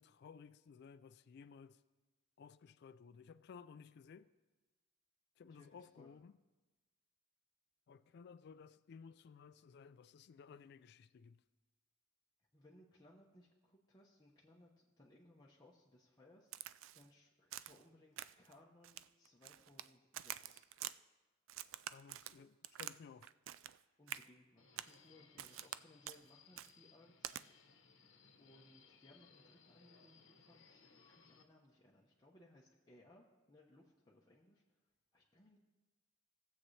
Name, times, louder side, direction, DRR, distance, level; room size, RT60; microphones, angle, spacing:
voice 1, 0.0-1.8 2.4-4.3 5.4-6.3 7.9-11.4 21.9-23.3, left 6 dB, 55° left, 0.3 m, -57 dB
voice 2, 5.5-6.2 12.5-16.5 16.9-20.6 24.0-27.3 28.4-34.6 35.1-35.6, left 1 dB, 20° left, 0.9 m, -65 dB
Crack, 16.5-17.1 17.5-17.8 18.2-18.5 18.8-19.9 20.1-21.0 21.5-23.0 23.2-23.8 24.1-24.3 24.8-25.0 25.4-25.8 26.1-26.2 26.6-26.7 27.2-27.4, right 12 dB, 70° right, 0.3 m, -47 dB
Subway metro underground, 24.6-31.4, left 5 dB, 75° left, 1.0 m, -66 dB
18.5 x 7.4 x 3.2 m
head